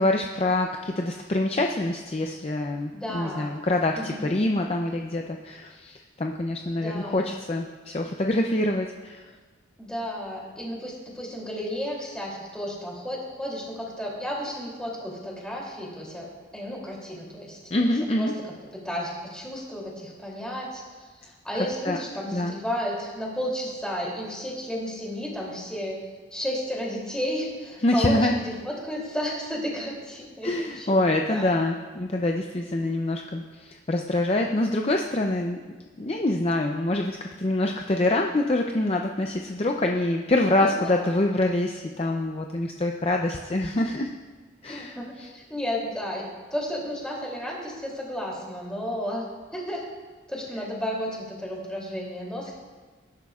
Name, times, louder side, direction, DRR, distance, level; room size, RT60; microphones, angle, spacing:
voice 1, 0.0-9.2 17.7-18.3 21.8-22.0 22.3-22.6 27.8-28.3 30.4-35.6 36.0-44.1 44.6-45.3, left 1 dB, 30° left, 2 dB, 0.5 m, -25 dB
voice 2, 2.9-3.6 3.9-4.4 6.7-7.3 9.8-16.3 16.5-17.9 18.2-18.4 18.7-26.0 26.3-31.0 31.3-31.5 40.6-41.3 44.7-46.2 46.5-49.2 49.5-49.8 50.3-52.5, equal, 5° left, -4 dB, 2.8 m, -33 dB
20.0 x 11.0 x 2.4 m, 1.4 s
head